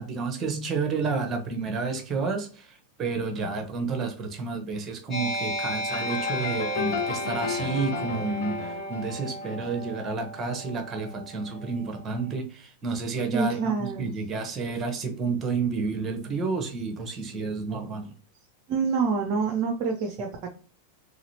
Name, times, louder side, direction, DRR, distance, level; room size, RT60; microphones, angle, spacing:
voice 1, 0.0-18.1, right 4 dB, 25° right, 5 dB, 1.0 m, -30 dB
sound 1, 5.1-12.2, right 1 dB, 20° left, 1.6 m, -34 dB
sound 2, 5.9-10.5, left 6 dB, 55° left, 0.7 m, -34 dB
voice 2, 13.3-14.1 18.7-20.5, right 5 dB, 40° right, 3 dB, 0.5 m, -27 dB
4.0 x 3.1 x 2.9 m, 0.39 s
figure-of-eight pair, 90°, 0 cm